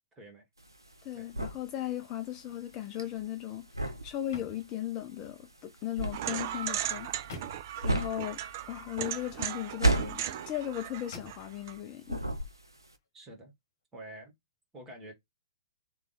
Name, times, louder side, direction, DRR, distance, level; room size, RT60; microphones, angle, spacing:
voice 1, 0.1-0.4 1.1-1.3 13.1-13.5 13.9-14.3 14.7-15.1, right 1 dB, 15° right, 1.4 m, -47 dB
sound 1, 0.6-11.8 12.1-12.9, right 2 dB, 85° right, 0.7 m, -33 dB
voice 2, 1.0-3.7 4.0-7.1 7.8-12.3, left 12 dB, 25° left, 0.5 m, -37 dB
sound 2, 2.4-3.1 3.5-5.4 6.2-7.9 9.7-10.5 11.1-11.7 12.2-12.4, left 3 dB, 50° left, 1.1 m, -52 dB
sound 3, 6.1-11.7, right 11 dB, 40° right, 0.4 m, -37 dB
3.4 x 2.2 x 4.0 m
figure-of-eight pair, 115°, 2 cm